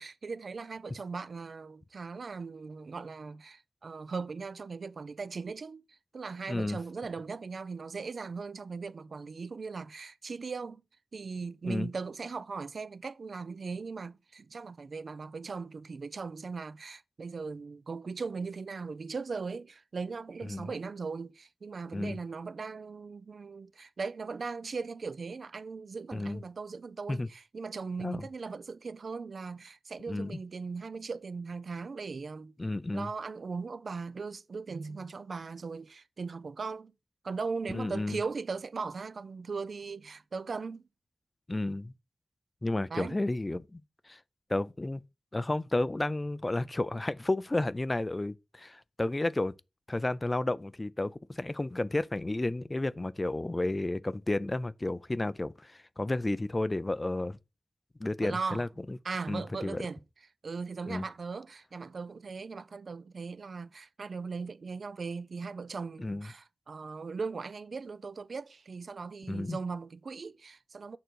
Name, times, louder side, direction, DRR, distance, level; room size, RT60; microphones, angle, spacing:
voice 1, 0.0-5.8 6.1-10.8 11.1-32.5 32.9-36.9 37.2-40.8 42.9-43.2 58.2-58.7 59.0-60.0 60.4-71.0, right 4 dB, 55° right, 0.4 m, -39 dB
voice 2, 6.5-6.8 11.6-11.9 20.5-20.7 21.9-22.2 26.1-26.4 27.1-27.3 28.0-28.3 30.1-30.4 32.6-33.1 37.7-38.2 41.5-41.9 42.6-43.8 44.1-44.2 44.5-45.0 45.3-49.5 49.9-57.4 58.0-59.0 59.3-59.8 60.9-61.0 66.0-66.3 69.3-69.6, left 2 dB, 20° left, 0.3 m, -32 dB
6.8 x 3.8 x 6.2 m
wide cardioid pair, 135°, 0 cm